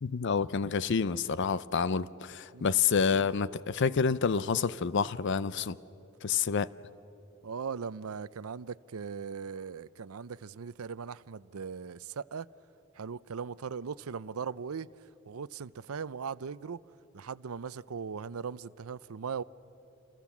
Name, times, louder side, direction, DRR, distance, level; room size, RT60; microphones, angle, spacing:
voice 1, 0.0-5.8 6.2-6.7, left 6 dB, 55° left, 0.5 m, -28 dB
voice 2, 7.4-12.5 12.9-14.9 15.3-16.8 17.1-19.4, right 6 dB, 85° right, 0.5 m, -39 dB
28.5 x 28.0 x 7.2 m
head